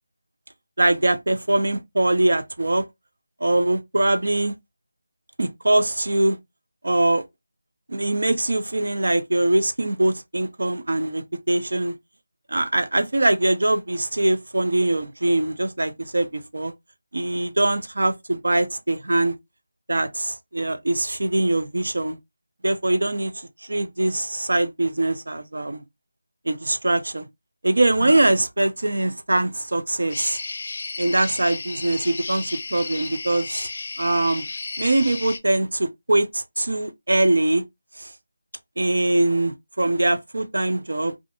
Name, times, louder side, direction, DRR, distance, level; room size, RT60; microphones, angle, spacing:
voice 1, 0.8-2.9 3.4-4.5 5.4-6.4 6.8-7.2 7.9-12.0 12.5-16.7 17.1-19.3 19.9-22.2 22.6-25.8 26.5-27.3 27.6-30.4 31.0-33.7 34.0-34.4 34.8-37.6 38.0-38.1 38.8-41.1, right 2 dB, 75° right, 0.5 m, -22 dB
sound 1, 30.1-35.4, left 3 dB, 45° left, 0.4 m, -33 dB
2.7 x 2.4 x 2.3 m
figure-of-eight pair, 170°, 0 cm